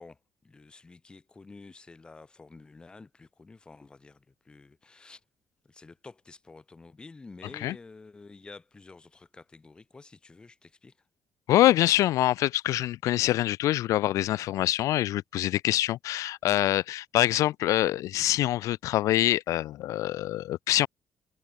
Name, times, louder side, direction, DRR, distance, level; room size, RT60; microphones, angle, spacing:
voice 1, 0.0-5.2 5.6-10.9, left 3 dB, 15° left, 3.5 m, -50 dB
voice 2, 11.5-20.9, left 14 dB, 90° left, 0.4 m, -25 dB
cardioid pair, 175°, 5 cm